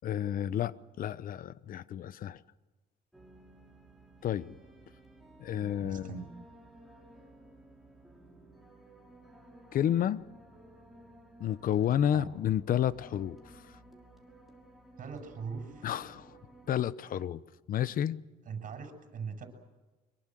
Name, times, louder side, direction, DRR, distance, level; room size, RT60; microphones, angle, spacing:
voice 1, 0.0-2.4 4.2-4.6 5.4-6.2 9.7-10.2 11.4-13.6 15.8-16.4 16.7-17.4 17.7-18.2, left 10 dB, 55° left, 1.0 m, -31 dB
sound 1, 3.1-16.7, right 1 dB, ahead, 5.7 m, -55 dB
voice 2, 5.5-6.3 12.1-12.3 15.0-15.9 18.5-19.5, right 6 dB, 50° right, 7.1 m, -41 dB
25.0 x 23.0 x 7.7 m
cardioid pair, 110°, 17 cm